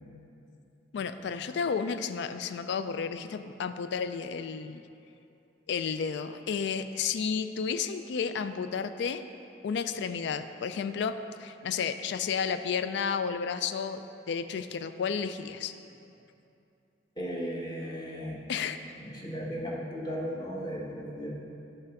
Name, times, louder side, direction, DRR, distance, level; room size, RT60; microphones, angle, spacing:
voice 1, 0.9-4.8 5.7-9.2 9.6-15.7 18.5-18.8, left 6 dB, 65° left, 11 dB, 0.3 m, -32 dB
voice 2, 17.2-18.4 19.0-21.3, equal, 20° left, -3 dB, 1.1 m, -36 dB
9.7 x 3.3 x 5.9 m, 2.7 s
head